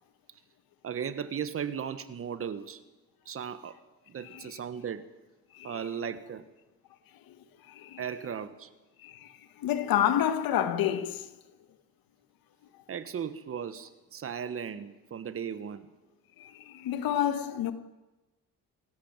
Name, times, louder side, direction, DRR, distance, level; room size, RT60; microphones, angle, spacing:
voice 1, 0.8-2.8 3.2-3.8 4.1-5.1 5.6-6.5 8.0-8.7 12.9-15.9 17.3-17.6, right 7 dB, 40° right, 1.4 m, -36 dB
voice 2, 7.7-8.0 9.0-11.3 16.4-17.7, left 10 dB, 80° left, 1.8 m, -29 dB
26.5 x 14.0 x 9.0 m
cardioid pair, 145°, 35 cm